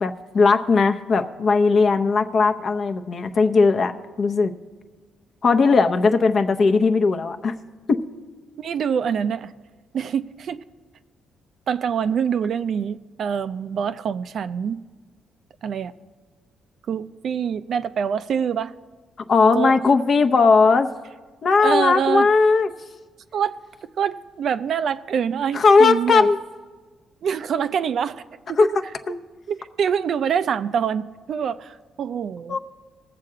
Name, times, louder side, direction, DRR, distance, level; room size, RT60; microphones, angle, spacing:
voice 1, 0.0-3.9 4.2-4.5 5.4-7.5 7.9-8.0 19.3-20.9 21.4-22.7 25.5-26.4 28.6-28.7 29.1-29.2 32.5-32.6, left 4 dB, 50° left, 7 dB, 0.7 m, -18 dB
voice 2, 8.6-9.5 9.9-10.6 11.7-14.8 15.6-15.9 16.9-18.7 19.5-19.7 21.6-22.3 23.3-23.6 24.0-26.3 27.2-28.2 28.5-28.7 29.5-32.6, right 7 dB, 60° right, 11 dB, 0.4 m, -25 dB
19.5 x 7.5 x 3.8 m, 1.4 s
cardioid pair, 90°, 0 cm